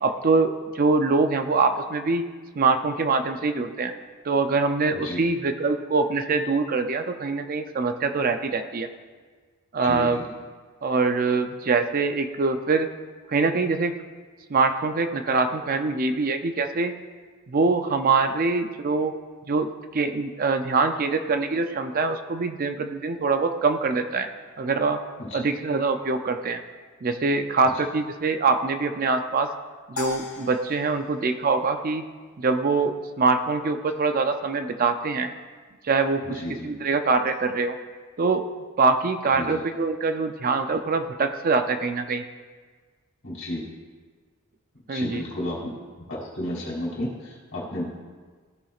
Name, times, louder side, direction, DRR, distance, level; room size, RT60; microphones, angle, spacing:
voice 1, 0.0-2.3 2.6-3.9 4.2-8.9 9.7-10.2 10.8-12.9 13.3-14.0 14.5-16.9 17.5-19.1 19.5-24.3 24.6-25.0 25.3-26.6 27.0-29.5 29.9-32.0 32.4-35.3 35.8-37.8 38.2-38.5 38.8-42.2 44.9-45.5, right 4 dB, 40° right, 8 dB, 0.4 m, -24 dB
voice 2, 9.8-10.3 25.2-25.4 36.2-36.7 39.3-39.6 43.2-43.6 44.9-45.7 46.1-47.8, left 1 dB, 60° left, -4 dB, 2.9 m, -32 dB
sound 1, 30.0-32.3, left 2 dB, 85° left, 1.9 m, -39 dB
15.0 x 7.2 x 2.4 m, 1.5 s
head